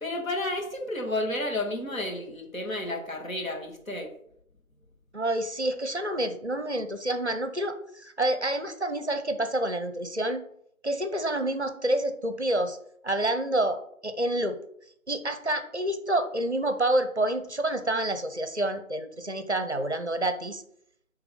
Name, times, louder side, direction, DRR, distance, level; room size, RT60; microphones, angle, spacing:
voice 1, 0.0-4.1, left 1 dB, 70° left, 0 dB, 1.8 m, -31 dB
voice 2, 5.1-10.4 10.8-12.8 13.0-14.6 15.1-20.6, right 1 dB, 50° right, 8 dB, 0.6 m, -28 dB
9.0 x 3.4 x 3.6 m, 0.70 s
figure-of-eight pair, 175°, 43 cm